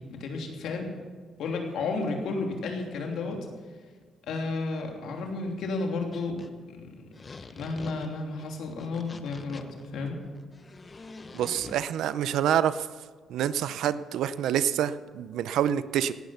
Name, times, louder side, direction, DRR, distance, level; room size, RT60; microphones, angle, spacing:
voice 1, 0.2-0.9 1.4-3.5 4.3-6.4 6.7-6.9 7.3-10.2, left 3 dB, 75° left, 2 dB, 3.0 m, -32 dB
sound 1, 6.1-6.5 6.8-6.9 7.1-11.8, left 3 dB, 30° left, 1.0 m, -45 dB
voice 2, 11.3-12.9 13.3-16.1, right 10 dB, 80° right, 15 dB, 0.6 m, -27 dB
17.5 x 12.0 x 5.8 m, 1.5 s
cardioid pair, 90°, 0 cm